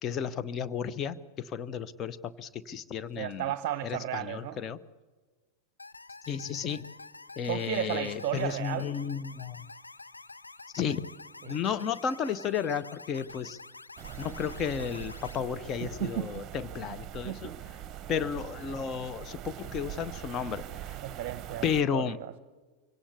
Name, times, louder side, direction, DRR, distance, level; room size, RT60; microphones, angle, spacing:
voice 1, 0.0-3.5 3.8-4.8 6.3-6.8 7.4-9.7 10.7-11.1 11.4-13.6 14.2-17.5 18.1-21.0 21.6-22.2, left 7 dB, 30° left, 12 dB, 0.9 m, -33 dB
voice 2, 3.2-4.6 7.5-8.9 11.4-11.6 15.8-16.3 17.2-17.6 21.0-21.7 21.9-22.0, right 12 dB, 45° right, 13 dB, 0.8 m, -33 dB
sound 1, 5.8-15.4, left 3 dB, 80° left, 0.7 m, -48 dB
sound 2, 11.2-11.3 11.8-12.0 13.1-13.5 14.8-16.6 17.1-18.1, left 5 dB, 55° left, 1.6 m, -54 dB
sound 3, 14.0-21.8, right 12 dB, 30° right, 1.1 m, -43 dB
24.5 x 17.5 x 8.5 m, 1.3 s
figure-of-eight pair, 90°, 0 cm